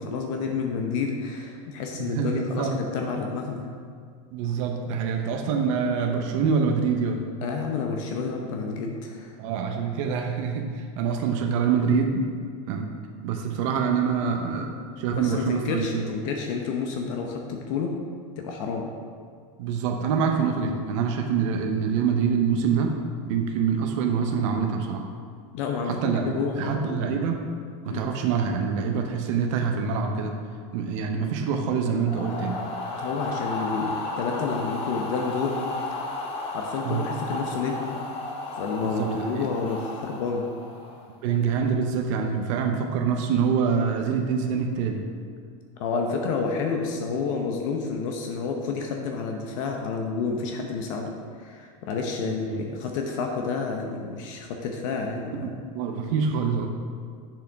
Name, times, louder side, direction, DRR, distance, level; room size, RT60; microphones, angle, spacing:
voice 1, 0.0-3.7 7.4-9.3 15.1-17.9 18.4-18.9 25.5-27.2 27.9-28.1 33.0-35.6 36.5-38.0 38.6-40.5 45.8-55.5, left 5 dB, 65° left, 2 dB, 0.8 m, -30 dB
voice 2, 1.9-2.8 4.3-7.3 9.4-12.3 12.7-12.9 13.2-14.7 15.0-16.0 19.6-22.9 23.2-25.0 25.9-27.4 27.8-30.3 30.7-32.6 36.8-37.0 38.8-39.5 41.2-45.1 52.2-52.6 55.0-56.7, right 6 dB, 60° right, 3 dB, 0.8 m, -25 dB
sound 1, 32.0-41.1, left 2 dB, 35° left, 0.9 m, -33 dB
7.8 x 6.9 x 3.5 m, 2.1 s
supercardioid pair, 145°, 18 cm